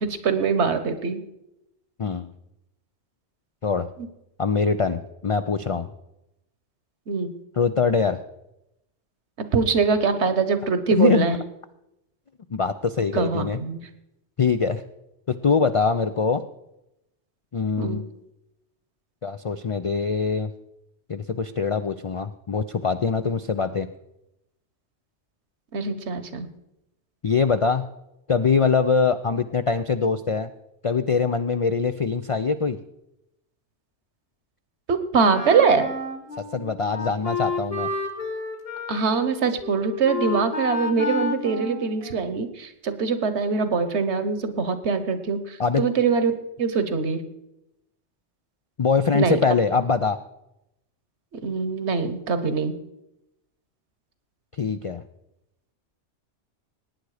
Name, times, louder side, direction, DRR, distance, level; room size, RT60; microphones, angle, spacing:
voice 1, 0.0-1.2 7.1-7.4 9.5-11.4 13.1-13.8 17.8-18.1 25.7-26.5 34.9-35.9 38.9-47.2 49.1-49.4 51.3-52.7, right 5 dB, 70° right, 11 dB, 1.3 m, -23 dB
voice 2, 2.0-2.3 3.6-3.9 4.4-5.9 7.6-8.2 10.9-11.3 12.5-13.6 14.4-14.8 15.3-16.4 17.5-18.1 19.2-20.5 21.1-23.9 27.2-27.9 28.3-30.5 30.8-32.8 36.5-37.9 45.6-45.9 48.8-50.2 54.6-55.0, left 5 dB, 60° left, 10 dB, 0.3 m, -23 dB
Wind instrument woodwind instrument, 35.3-42.5, left 3 dB, 30° left, 1.4 m, -31 dB
18.0 x 9.2 x 4.9 m, 0.87 s
omnidirectional pair, 1.2 m